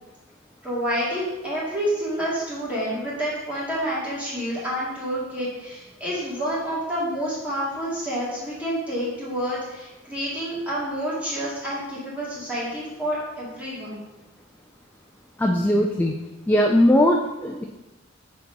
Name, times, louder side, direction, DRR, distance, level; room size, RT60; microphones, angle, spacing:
voice 1, 0.6-14.0, equal, 5° right, -9 dB, 2.3 m, -28 dB
voice 2, 15.4-16.2 16.5-17.6, left 1 dB, 10° left, 1 dB, 0.3 m, -19 dB
6.7 x 4.1 x 4.0 m, 1.0 s
head